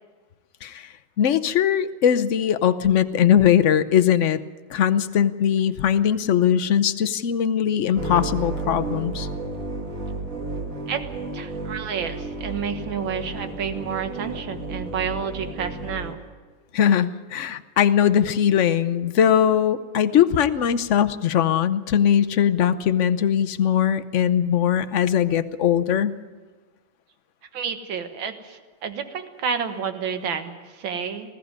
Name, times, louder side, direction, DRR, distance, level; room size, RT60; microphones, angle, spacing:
voice 1, 1.2-4.4 4.7-9.3 16.7-26.2, left 9 dB, 60° left, 12 dB, 0.7 m, -20 dB
sound 1, 7.9-16.1, right 3 dB, 45° right, 2.2 m, -32 dB
voice 2, 11.3-16.2 27.5-31.3, right 6 dB, 75° right, 8 dB, 2.2 m, -30 dB
20.0 x 15.5 x 9.5 m, 1.4 s
omnidirectional pair, 2.1 m